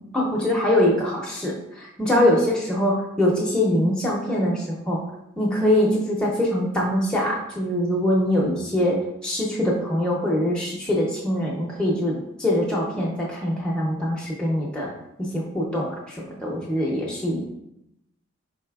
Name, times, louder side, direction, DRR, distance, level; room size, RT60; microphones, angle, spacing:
voice 1, 0.0-5.0 5.4-14.9 15.3-17.4, left 1 dB, 5° left, -5 dB, 0.5 m, -23 dB
4.1 x 3.8 x 2.3 m, 0.81 s
head